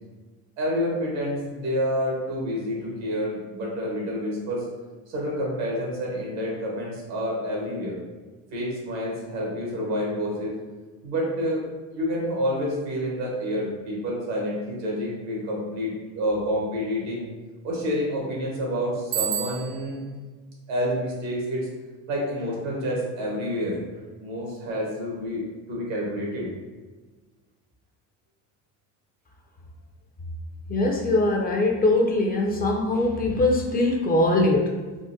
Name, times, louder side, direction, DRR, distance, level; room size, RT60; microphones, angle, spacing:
voice 1, 0.6-4.7 5.1-8.0 8.5-10.6 11.0-11.6 11.9-17.3 17.6-20.0 20.7-21.7 22.1-23.8 24.2-26.5, equal, 85° right, -3 dB, 1.2 m, -28 dB
Bicycle bell, 19.1-20.1, right 10 dB, 70° right, 0.8 m, -30 dB
voice 2, 30.7-34.8, left 2 dB, 25° left, 1 dB, 0.4 m, -22 dB
3.7 x 2.1 x 2.5 m, 1.3 s
supercardioid pair, 85°, 38 cm